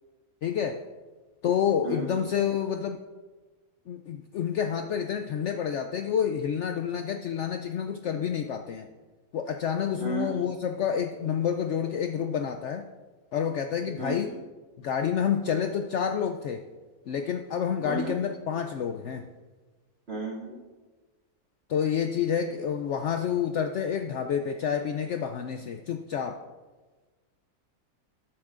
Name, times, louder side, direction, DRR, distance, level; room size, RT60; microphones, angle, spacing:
voice 1, 0.4-0.8 1.4-3.0 3.9-8.9 9.3-12.9 13.3-14.4 14.8-16.6 17.1-19.3 21.7-26.4, left 8 dB, 65° left, 6 dB, 0.7 m, -29 dB
voice 2, 10.0-10.3 14.0-14.3 17.8-18.1 20.1-20.6, right 3 dB, 40° right, -5 dB, 2.7 m, -33 dB
19.0 x 7.1 x 2.5 m, 1.3 s
omnidirectional pair, 1.6 m